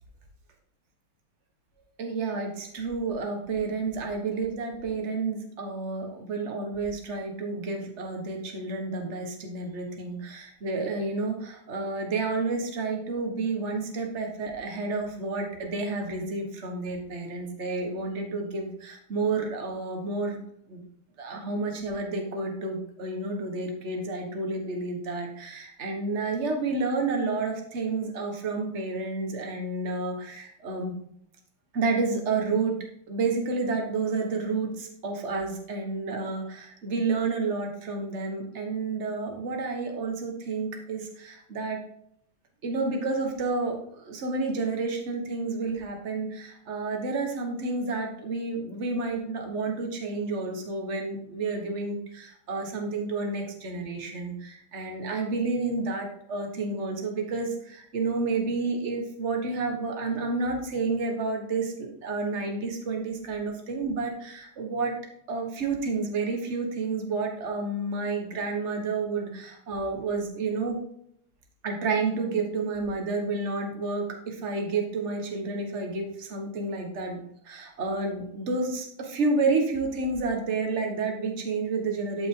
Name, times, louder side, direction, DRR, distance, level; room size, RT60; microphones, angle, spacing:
voice 1, 2.0-20.4 20.7-20.8 21.2-30.9 31.7-32.8 33.1-41.8 42.6-64.9 65.3-70.8 71.6-77.2 77.4-82.3, right 3 dB, 35° right, 2 dB, 1.7 m, -30 dB
12.5 x 5.4 x 3.8 m, 0.70 s
omnidirectional pair, 2.4 m